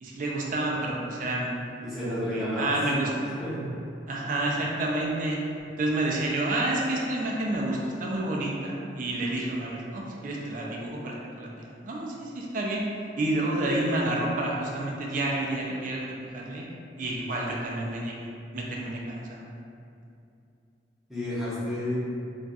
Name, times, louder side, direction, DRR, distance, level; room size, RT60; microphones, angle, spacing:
voice 1, 0.0-1.5 2.0-3.1 4.1-5.4 5.8-12.8 13.2-16.7 17.0-19.5, right 1 dB, 45° right, -2 dB, 0.4 m, -29 dB
voice 2, 1.8-2.8 3.2-3.7 21.1-22.0, left 1 dB, ahead, -11 dB, 0.8 m, -31 dB
4.0 x 2.3 x 2.3 m, 2.5 s
head